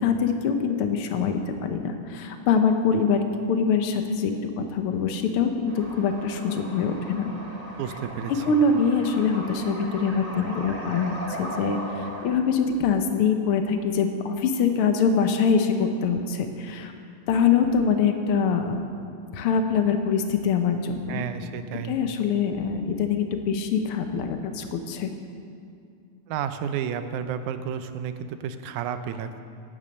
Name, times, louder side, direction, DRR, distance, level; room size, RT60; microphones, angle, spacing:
voice 1, 0.0-7.3 8.3-11.8 12.2-16.9 17.3-18.8 19.3-21.2 21.9-25.1, left 5 dB, 70° left, 6 dB, 1.3 m, -24 dB
sound 1, 5.7-12.3, right 1 dB, 20° right, 2.3 m, -38 dB
voice 2, 7.8-8.6 21.1-21.9 26.3-29.4, right 8 dB, 85° right, 10 dB, 2.1 m, -31 dB
13.5 x 9.5 x 6.4 m, 2.4 s
omnidirectional pair, 3.4 m